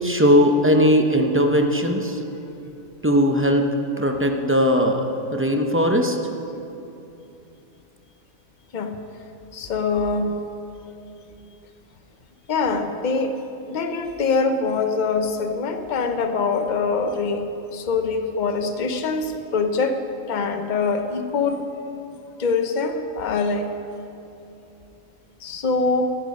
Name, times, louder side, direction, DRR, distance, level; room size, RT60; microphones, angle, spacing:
voice 1, 0.0-2.2 3.0-3.7 4.0-6.2, equal, 15° right, 3 dB, 0.5 m, -19 dB
voice 2, 8.7-9.0 9.5-10.5 12.5-13.4 13.7-17.4 17.7-20.0 20.3-21.7 22.4-23.7 25.4-26.2, left 4 dB, 40° left, 7 dB, 0.7 m, -24 dB
14.0 x 9.9 x 5.3 m, 2.8 s
omnidirectional pair, 1.5 m